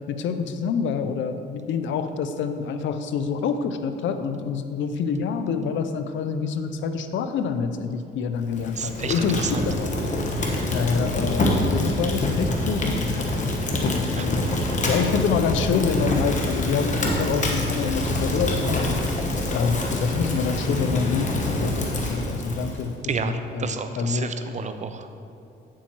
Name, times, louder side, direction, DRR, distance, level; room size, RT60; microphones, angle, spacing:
voice 1, 0.1-9.9 10.3-13.3 13.8-14.6 14.9-19.2 19.5-22.9 23.2-24.4, left 6 dB, 70° left, 9 dB, 0.5 m, -27 dB
Fire, 8.5-22.9, left 1 dB, 40° left, 1.2 m, -26 dB
voice 2, 8.8-9.5 10.4-10.7 14.1-14.3 14.7-14.9 23.1-25.1, right 5 dB, 35° right, 9 dB, 0.5 m, -31 dB
8.5 x 7.3 x 3.0 m, 2.5 s
cardioid pair, 90°, 20 cm